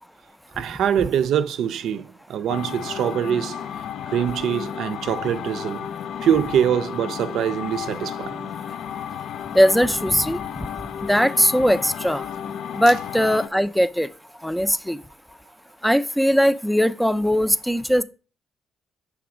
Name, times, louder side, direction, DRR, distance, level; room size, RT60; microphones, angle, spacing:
voice 1, 0.6-3.6 4.1-5.9 6.2-8.5, right 9 dB, 75° right, 0.4 m, -24 dB
sound 1, 2.5-13.5, left 8 dB, 70° left, 0.3 m, -33 dB
voice 2, 9.5-10.4 11.1-12.3 12.7-14.1 14.4-15.0 15.8-18.0, equal, ahead, 0.4 m, -19 dB
6.0 x 3.5 x 4.8 m
cardioid pair, 90°, 0 cm